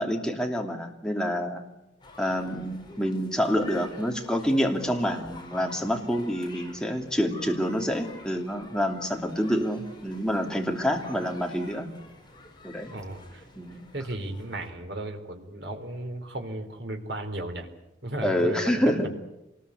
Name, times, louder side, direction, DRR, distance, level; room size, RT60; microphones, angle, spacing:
voice 1, 0.0-1.6 2.2-11.9 12.6-12.9 13.6-13.8 18.2-19.1, equal, 5° left, 2 dB, 2.8 m, -27 dB
sound 1, 2.0-14.7, left 2 dB, 25° left, 5.3 m, -48 dB
voice 2, 12.9-13.4 13.9-17.7 18.0-19.1, right 1 dB, 60° right, 4 dB, 4.1 m, -35 dB
26.5 x 20.5 x 8.6 m, 0.92 s
head